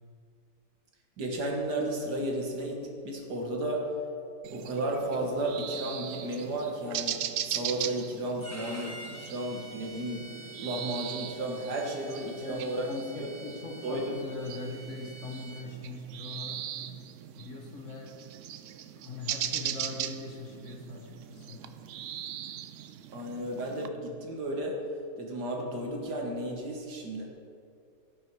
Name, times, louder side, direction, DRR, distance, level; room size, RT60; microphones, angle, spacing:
voice 1, 1.2-3.9 4.5-10.3 10.6-12.9 13.2-13.3 13.8-14.1 23.1-24.8 25.2-27.2, right 1 dB, 70° right, 0 dB, 2.0 m, -33 dB
sound 1, 4.4-23.9, right 10 dB, 85° right, 0.6 m, -40 dB
Bowed string instrument, 8.4-15.7, right 2 dB, 10° right, 0.8 m, -48 dB
voice 2, 12.4-16.7 17.4-18.2 18.7-21.7, left 3 dB, 45° left, 0 dB, 1.6 m, -41 dB
17.5 x 6.3 x 4.7 m, 2.4 s
omnidirectional pair, 1.9 m